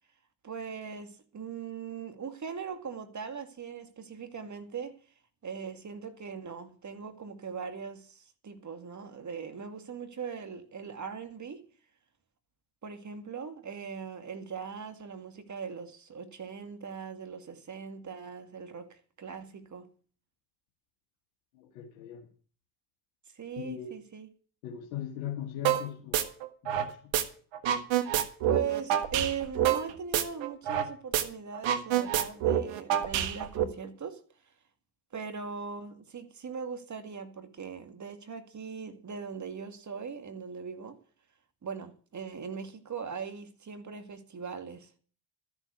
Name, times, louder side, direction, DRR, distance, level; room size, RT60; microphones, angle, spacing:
voice 1, 0.4-5.0 5.4-11.6 12.8-19.9 23.3-24.3 28.4-34.2 35.1-41.0 41.6-45.0, right 6 dB, 35° right, 2.1 m, -40 dB
voice 2, 21.6-22.3 23.6-23.9 24.6-26.3 26.8-26.9, left 10 dB, 85° left, 1.9 m, -39 dB
sound 1, 25.6-25.8 26.1-27.2 27.5-30.9 31.1-31.2 31.5-33.6, right 10 dB, 65° right, 1.6 m, -27 dB
13.5 x 7.1 x 8.2 m
hypercardioid pair, 65°, 49 cm